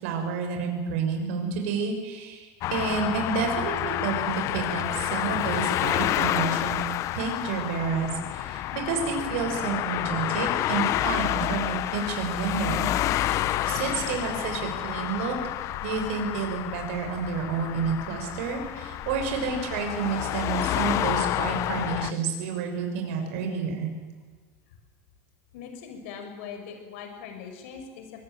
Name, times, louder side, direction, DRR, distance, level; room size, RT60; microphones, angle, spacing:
voice 1, 0.0-6.8 7.1-12.8 13.6-15.3 15.8-23.9, right 5 dB, 75° right, 3 dB, 6.4 m, -30 dB
sound 1, 2.6-22.1, left 14 dB, 45° left, 0.8 m, -29 dB
voice 2, 25.5-28.2, left 6 dB, 75° left, 5 dB, 6.2 m, -41 dB
24.5 x 21.0 x 9.3 m, 1.4 s
supercardioid pair, 145°, 7 cm